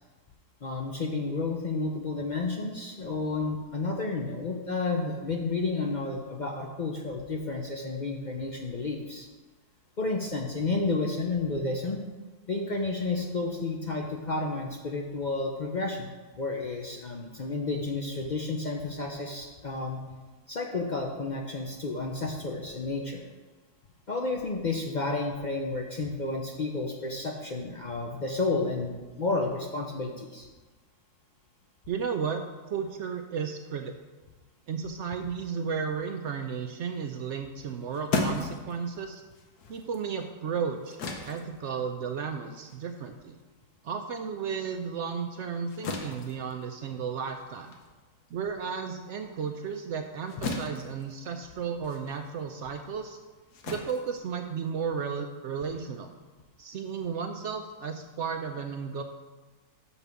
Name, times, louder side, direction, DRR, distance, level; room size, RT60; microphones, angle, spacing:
voice 1, 0.6-9.3 10.0-12.0 12.5-20.0 20.5-23.3 24.1-30.5, left 3 dB, 55° left, 1 dB, 0.5 m, -31 dB
voice 2, 31.9-33.9 34.7-39.2 39.7-41.0 41.3-43.4 43.8-47.7 48.3-53.2 53.7-56.1 56.6-59.0, right 6 dB, 70° right, 6 dB, 0.7 m, -34 dB
sound 1, 37.6-44.4 44.7-54.9, left 3 dB, 75° left, 1.5 m, -38 dB
6.0 x 5.7 x 6.8 m, 1.3 s
omnidirectional pair, 1.7 m